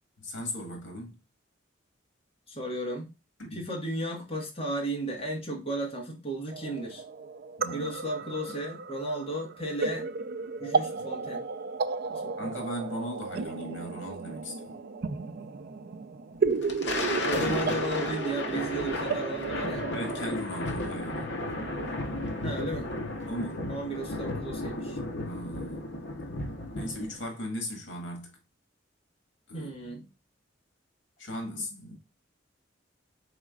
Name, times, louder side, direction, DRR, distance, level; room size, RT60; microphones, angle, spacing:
voice 1, 0.2-1.2 3.4-3.6 7.6-7.9 12.4-14.7 19.9-21.3 23.3-23.7 25.2-25.8 26.7-28.4 29.5-29.9 31.2-32.0, equal, 85° left, 1.8 m, -37 dB
voice 2, 2.5-3.1 3.5-7.0 7.7-10.1 10.6-11.4 12.1-12.6 17.2-19.8 22.4-22.9 23.7-25.0 29.5-30.1, right 1 dB, 30° left, 1.4 m, -34 dB
sound 1, 6.5-20.3, right 5 dB, 55° right, 0.4 m, -33 dB
Thunder, 16.5-27.2, left 2 dB, 65° left, 0.9 m, -34 dB
4.9 x 4.2 x 2.4 m
head